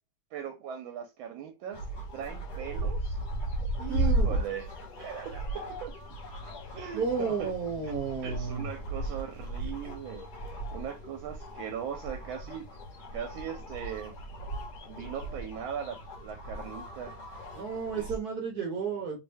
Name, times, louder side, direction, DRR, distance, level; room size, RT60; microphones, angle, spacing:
voice 1, 0.3-1.9 2.1-3.2 3.8-4.7 5.0-5.9 6.7-7.5 7.8-7.9 8.2-12.7 13.1-14.2 14.8-17.1 17.9-18.1, right 8 dB, 80° right, 1.4 m, -39 dB
sound 1, 1.7-18.2, right 1 dB, 55° left, 1.6 m, -36 dB
voice 2, 3.9-4.4 6.9-8.7 17.5-19.2, right 6 dB, 60° right, 1.2 m, -32 dB
3.4 x 2.6 x 3.4 m
omnidirectional pair, 2.2 m